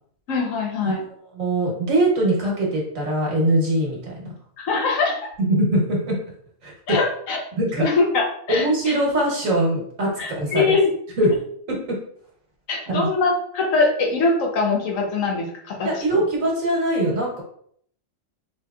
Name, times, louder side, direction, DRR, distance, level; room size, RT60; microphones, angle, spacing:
voice 1, 0.3-1.0 4.6-5.3 6.9-7.4 7.8-9.0 10.2-10.8 12.7-16.2, left 3 dB, 80° left, 1 dB, 1.3 m, -23 dB
voice 2, 1.3-4.2 5.5-6.2 6.6-7.0 7.6-7.9 8.5-10.8 11.2-11.4 11.7-12.0 12.9-13.1 15.8-17.4, right 1 dB, 80° right, -2 dB, 1.6 m, -22 dB
4.5 x 3.0 x 2.3 m, 0.64 s
omnidirectional pair, 1.4 m